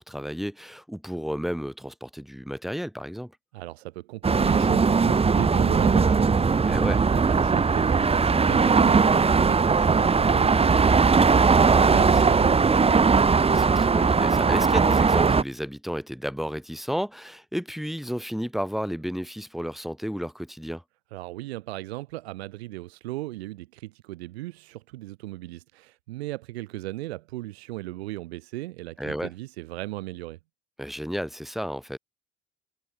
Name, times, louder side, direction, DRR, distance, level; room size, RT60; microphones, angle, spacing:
voice 1, 0.0-3.3 6.7-7.0 11.6-12.0 13.5-20.8 29.0-29.3 30.8-32.0, equal, ahead, 3.7 m, -32 dB
voice 2, 3.5-6.8 7.1-13.3 21.1-30.4, right 18 dB, 85° right, 1.9 m, -37 dB
sound 1, 4.2-15.4, right 5 dB, 20° right, 0.6 m, -19 dB
hypercardioid pair, 50°, 31 cm